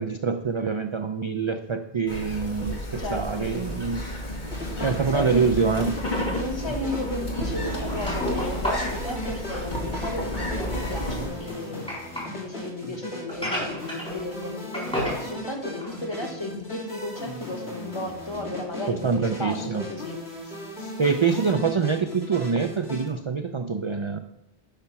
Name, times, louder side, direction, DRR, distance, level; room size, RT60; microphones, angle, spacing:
voice 1, 0.0-4.0 4.8-6.0 18.9-19.9 20.8-24.2, right 5 dB, 40° right, 7 dB, 0.4 m, -25 dB
sound 1, 2.1-11.3, equal, 45° left, 2.2 m, -32 dB
voice 2, 3.0-3.5 4.8-5.5 6.3-12.0 12.3-20.2, left 2 dB, 25° left, 2 dB, 1.4 m, -34 dB
sound 2, 4.5-23.1, equal, 70° left, 2.8 m, -37 dB
sound 3, 7.6-12.3 13.3-14.5 14.7-15.2 15.7-16.3 16.7-16.8 17.4-17.5, equal, 5° left, 4.4 m, -32 dB
10.5 x 5.7 x 5.8 m, 0.85 s
omnidirectional pair, 1.1 m